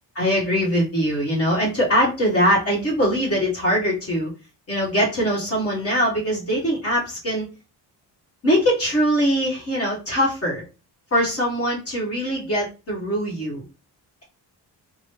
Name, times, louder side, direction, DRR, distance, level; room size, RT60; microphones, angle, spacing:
voice 1, 0.1-4.3 4.7-7.4 8.4-10.6 11.1-13.6, equal, 35° left, -5 dB, 1.5 m, -22 dB
3.0 x 2.3 x 3.1 m, 0.31 s
cardioid pair, 145°, 40 cm